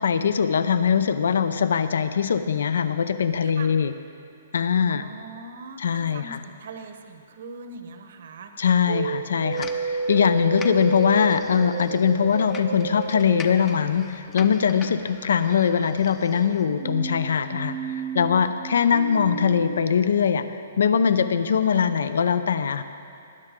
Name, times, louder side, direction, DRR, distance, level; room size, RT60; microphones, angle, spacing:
voice 1, 0.0-3.9 4.5-5.1 5.8-6.4 8.6-20.4 20.8-22.8, left 7 dB, 75° left, 11 dB, 0.6 m, -22 dB
voice 2, 3.4-3.8 4.9-8.5, right 3 dB, 55° right, 6 dB, 0.9 m, -41 dB
sound 1, 8.9-13.5 16.8-20.1, right 4 dB, 85° right, 1.1 m, -31 dB
sound 2, 9.5-16.7, left 5 dB, 15° left, 0.5 m, -43 dB
19.5 x 10.5 x 3.7 m, 2.7 s
hypercardioid pair, 170°, 0 cm